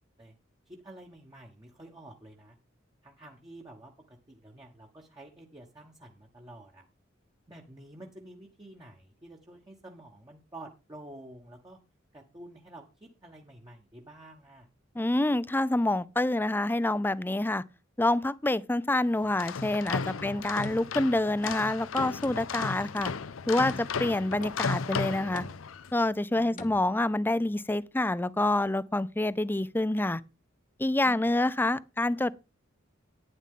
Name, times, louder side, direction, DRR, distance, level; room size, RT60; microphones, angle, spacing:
voice 1, 0.7-2.6 3.0-6.9 7.5-11.8 12.1-14.7 20.1-20.4 26.3-26.8 31.0-31.3, right 1 dB, 20° right, 1.2 m, -49 dB
voice 2, 15.0-17.6 18.0-23.1 23.5-25.4 25.9-30.2 30.8-32.3, left 2 dB, 10° left, 0.4 m, -27 dB
sound 1, 19.2-25.9, left 5 dB, 80° left, 0.6 m, -35 dB
sound 2, 19.9-21.1 21.4-21.9 22.2-23.4 23.7-24.2 24.4-24.9 25.4-25.9 26.6-26.8, left 3 dB, 40° left, 1.1 m, -48 dB
11.0 x 9.8 x 3.7 m
head